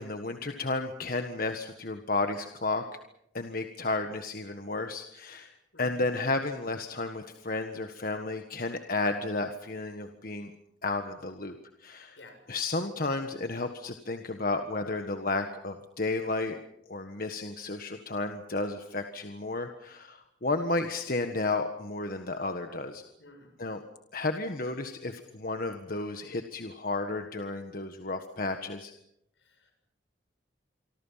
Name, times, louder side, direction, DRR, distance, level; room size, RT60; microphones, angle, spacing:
voice 1, 0.0-2.8 3.3-5.5 5.8-10.5 10.8-12.2 12.5-16.6 16.9-23.0 23.6-23.8 24.1-28.9, left 3 dB, 50° left, 6 dB, 1.5 m, -32 dB
voice 2, 23.2-23.5 29.4-29.7, left 2 dB, 80° left, 5 dB, 7.6 m, -53 dB
27.0 x 24.5 x 5.8 m, 0.77 s
head